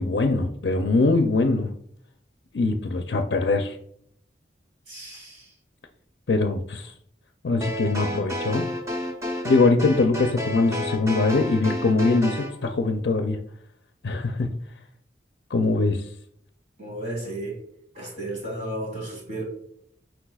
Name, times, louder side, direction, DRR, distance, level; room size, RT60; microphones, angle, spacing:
voice 1, 0.0-1.7 2.5-3.8 6.3-6.9 7.4-8.7 9.4-13.4 14.0-14.5 15.5-16.0, left 3 dB, 65° left, 5 dB, 0.5 m, -22 dB
voice 2, 4.9-5.5 16.8-17.6 17.9-19.4, right 1 dB, 40° right, -2 dB, 2.6 m, -33 dB
sound 1, 7.6-12.5, left 1 dB, 15° right, 0.8 m, -31 dB
8.8 x 4.6 x 2.3 m, 0.68 s
head